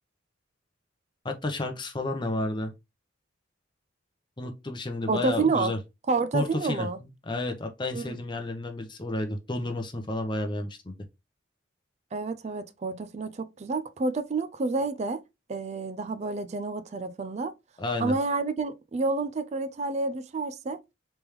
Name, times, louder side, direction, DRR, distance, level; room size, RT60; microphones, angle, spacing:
voice 1, 1.2-2.7 4.4-5.8 6.3-6.9 7.3-10.9 17.8-18.1, left 2 dB, 25° left, 0.7 m, -31 dB
voice 2, 5.1-5.7 6.1-7.0 7.9-8.2 12.1-15.2 15.5-17.5 18.0-20.8, right 3 dB, 35° right, 0.4 m, -29 dB
3.4 x 3.4 x 3.0 m
head